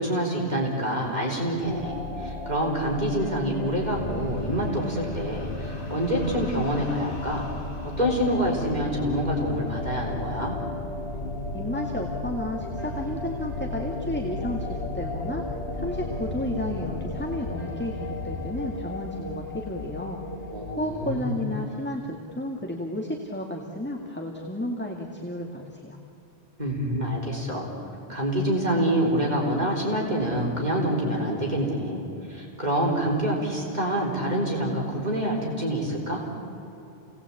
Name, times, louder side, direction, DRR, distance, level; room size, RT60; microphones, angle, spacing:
voice 1, 0.0-7.5 8.0-10.6 20.5-21.5 26.6-27.7 28.1-36.2, equal, 45° right, -2 dB, 4.3 m, -26 dB
sound 1, 1.6-20.8, left 2 dB, 55° left, 2.8 m, -35 dB
sound 2, 3.9-18.7, left 3 dB, 90° left, 1.3 m, -39 dB
voice 2, 11.5-15.4 15.7-20.2 20.8-26.0, left 1 dB, 10° left, 0 dB, 2.0 m, -32 dB
28.5 x 19.0 x 8.5 m, 2.9 s
omnidirectional pair, 1.1 m